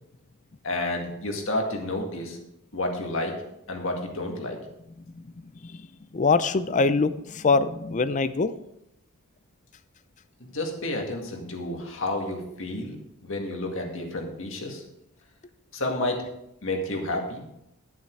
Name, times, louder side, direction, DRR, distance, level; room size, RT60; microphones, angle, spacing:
voice 1, 0.6-2.4 2.7-3.4 3.7-4.6 10.4-13.0 13.2-14.8 15.7-16.3 16.6-17.4, left 1 dB, 60° left, 2 dB, 2.0 m, -30 dB
voice 2, 5.1-5.9 6.1-8.5, left 4 dB, 35° left, 14 dB, 0.4 m, -24 dB
11.5 x 7.2 x 4.7 m, 0.83 s
head